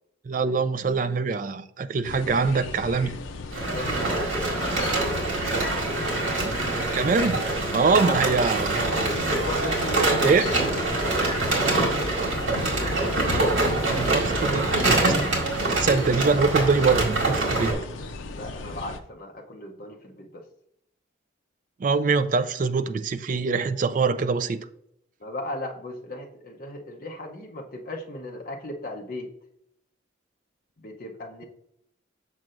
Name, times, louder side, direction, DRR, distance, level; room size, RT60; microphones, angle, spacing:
voice 1, 0.3-3.2 6.9-7.5 7.7-8.8 10.2-10.4 13.9-15.2 15.8-17.8 21.8-24.7, right 4 dB, 40° right, 0.3 m, -24 dB
sound 1, 2.0-19.0, left 3 dB, 80° left, 0.5 m, -37 dB
sound 2, 3.5-17.7, right 2 dB, 70° right, 1.9 m, -25 dB
voice 2, 3.7-5.7 7.9-8.1 9.4-10.4 11.4-12.9 18.3-20.4 25.2-29.3 30.8-31.4, left 1 dB, 45° left, 0.7 m, -37 dB
6.4 x 6.0 x 2.5 m
head